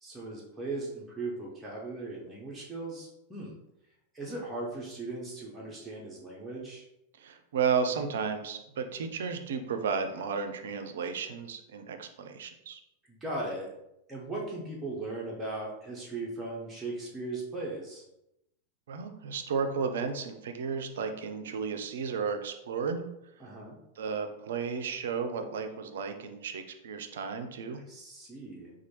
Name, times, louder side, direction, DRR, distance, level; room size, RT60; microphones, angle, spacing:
voice 1, 0.0-3.6 4.1-6.8 13.1-13.7 14.1-18.0 23.4-23.8 27.9-28.7, right 2 dB, 10° right, -5 dB, 0.7 m, -38 dB
voice 2, 7.2-12.8 18.9-23.0 24.0-27.8, right 6 dB, 60° right, 7 dB, 0.4 m, -33 dB
4.2 x 2.2 x 2.9 m, 0.86 s
figure-of-eight pair, 90°, 0 cm